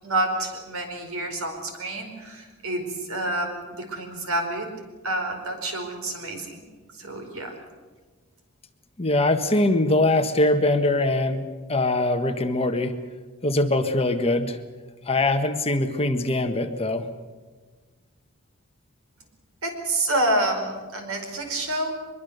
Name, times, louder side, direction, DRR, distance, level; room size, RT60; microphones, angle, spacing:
voice 1, 0.0-4.7 5.0-6.6 6.9-7.6 19.6-22.0, right 1 dB, 75° right, 4 dB, 4.8 m, -28 dB
voice 2, 9.0-12.9 13.4-14.6 15.0-17.1, left 2 dB, 30° left, 6 dB, 1.5 m, -22 dB
23.5 x 22.5 x 6.8 m, 1.4 s
head